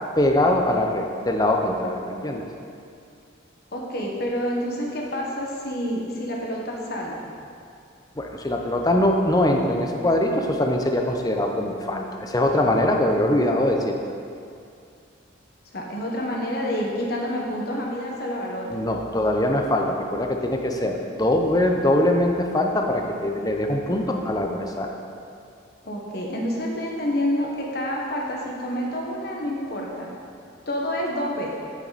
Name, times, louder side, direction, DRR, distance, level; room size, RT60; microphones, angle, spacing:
voice 1, 0.2-2.5 8.2-14.0 18.7-24.9, left 1 dB, 20° left, 2 dB, 0.8 m, -22 dB
voice 2, 3.7-7.3 15.7-18.9 25.8-30.1 30.7-31.5, equal, 55° left, -2 dB, 1.5 m, -28 dB
9.1 x 8.7 x 4.2 m, 2.4 s
head